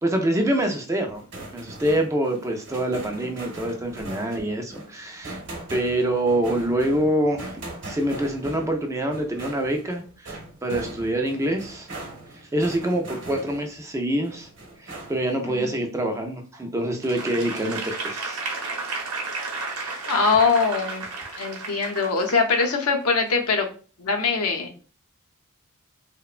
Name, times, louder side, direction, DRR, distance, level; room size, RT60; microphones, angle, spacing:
voice 1, 0.0-1.2 1.5-5.4 5.7-11.9 12.3-14.5 14.8-18.4 19.8-20.0, right 1 dB, 15° right, 3 dB, 0.3 m, -26 dB
sound 1, 1.1-13.8 14.2-15.4, right 2 dB, 55° right, 0.8 m, -40 dB
Applause / Crowd, 17.0-22.8 23.3-23.4, right 3 dB, 80° right, 0.7 m, -33 dB
voice 2, 20.1-21.0 21.4-23.7 24.0-24.7, left 4 dB, 75° left, 2 dB, 0.6 m, -22 dB
2.9 x 2.1 x 2.4 m, 0.39 s
head